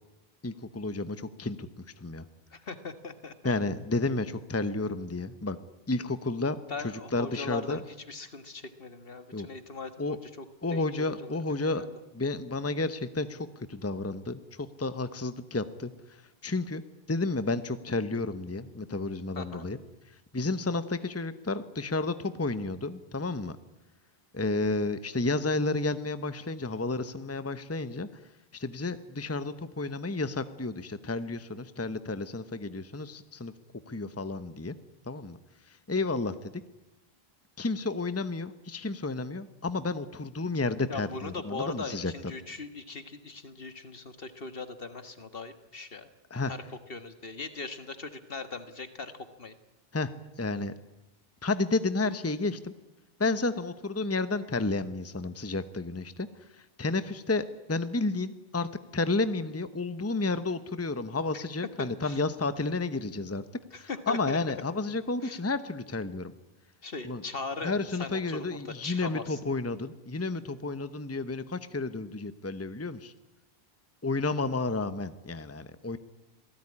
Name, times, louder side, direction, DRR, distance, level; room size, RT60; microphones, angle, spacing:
voice 1, 0.4-1.7 2.0-2.2 3.4-5.6 5.9-6.6 6.8-7.8 9.3-9.5 10.0-10.2 10.6-11.8 12.1-16.8 17.1-19.8 20.3-23.6 24.3-28.1 28.5-33.5 33.9-34.7 35.1-35.4 35.7-36.5 37.6-42.1 46.3-46.5 49.9-50.1 50.4-50.7 51.4-52.7 53.2-56.3 56.6-58.7 58.9-63.4 63.8-66.3 67.0-67.2 67.6-73.1 74.0-76.0, left 3 dB, 15° left, 12 dB, 0.9 m, -31 dB
voice 2, 2.5-3.5 6.7-11.4 11.8-12.0 19.4-19.7 40.9-46.1 46.5-46.6 46.9-49.1 49.4-49.6 61.3-61.4 61.8-62.2 63.7-64.4 65.2-65.4 66.8-69.4, left 3 dB, 65° left, 10 dB, 1.9 m, -40 dB
27.0 x 18.0 x 9.9 m, 0.97 s
omnidirectional pair, 1.0 m